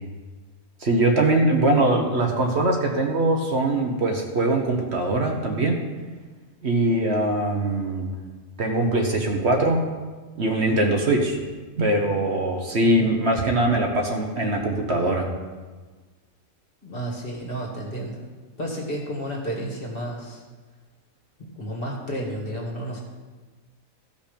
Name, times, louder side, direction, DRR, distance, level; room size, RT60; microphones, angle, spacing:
voice 1, 0.8-5.8 6.6-8.1 8.6-9.8 10.4-11.4 11.8-15.3, right 2 dB, 50° right, 1 dB, 1.3 m, -22 dB
voice 2, 12.8-13.1 16.8-18.3 18.6-20.4 21.4-23.0, right 1 dB, 40° left, -2 dB, 2.0 m, -32 dB
15.0 x 5.3 x 5.2 m, 1.4 s
omnidirectional pair, 1.5 m